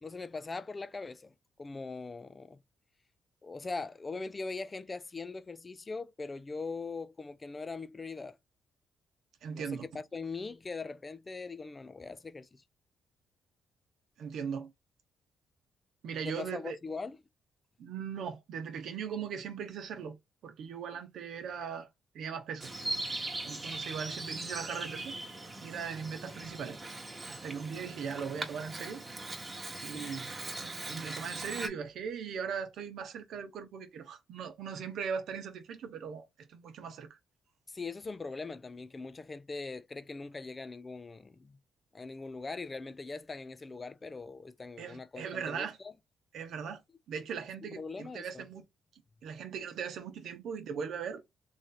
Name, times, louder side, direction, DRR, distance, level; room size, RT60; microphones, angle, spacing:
voice 1, 0.0-2.6 3.4-8.4 9.5-12.6 16.2-17.2 29.9-30.3 37.7-41.6 41.9-45.9 47.6-48.4, left 4 dB, 25° left, 0.4 m, -41 dB
voice 2, 9.4-9.9 14.2-14.7 16.0-16.8 17.8-20.2 20.4-21.9 22.1-22.7 23.4-25.2 25.6-26.8 27.3-29.0 29.8-37.2 44.8-45.8 46.3-46.8 47.1-48.6 49.2-51.2, right 7 dB, 70° right, 0.8 m, -39 dB
Bird vocalization bird call bird song, 22.6-31.7, right 2 dB, 20° right, 1.1 m, -40 dB
3.1 x 2.7 x 3.9 m
cardioid pair, 90°, 0 cm